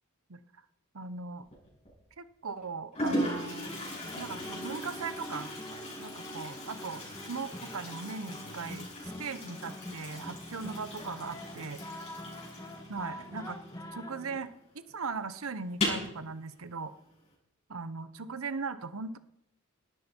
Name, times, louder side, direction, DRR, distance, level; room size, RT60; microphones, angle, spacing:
voice 1, 0.9-1.5 2.2-3.7 4.1-5.6 6.0-8.9 9.2-11.8 12.9-13.6 13.9-14.5 14.7-16.9 17.7-19.2, right 4 dB, 90° right, 13 dB, 0.9 m, -39 dB
Toilet flush, 1.4-1.9 2.6-2.7 2.9-14.2 14.5-14.6 14.9-15.0 15.7-16.1, left 1 dB, 35° left, 7.1 m, -38 dB
sound 1, 3.2-14.4, left 1 dB, 15° left, 1.6 m, -45 dB
18.5 x 12.5 x 4.5 m, 0.79 s
head